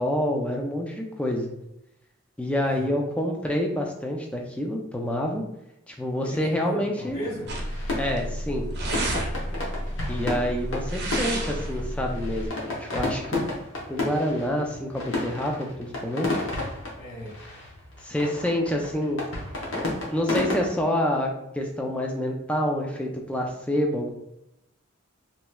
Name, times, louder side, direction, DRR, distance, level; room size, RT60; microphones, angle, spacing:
voice 1, 0.0-1.5 2.4-5.4 5.9-7.2 8.0-8.7 10.1-13.4 13.9-16.4 18.0-19.2 19.7-24.1, equal, 5° left, 1 dB, 0.3 m, -27 dB
voice 2, 2.6-2.9 6.2-7.5 9.4-9.7 16.9-17.4, equal, 45° left, -12 dB, 1.4 m, -36 dB
sound 1, 7.1-20.7, left 2 dB, 60° left, 0.9 m, -33 dB
sound 2, 7.5-12.5, right 1 dB, 50° right, 0.6 m, -31 dB
3.2 x 3.0 x 2.2 m, 0.86 s
head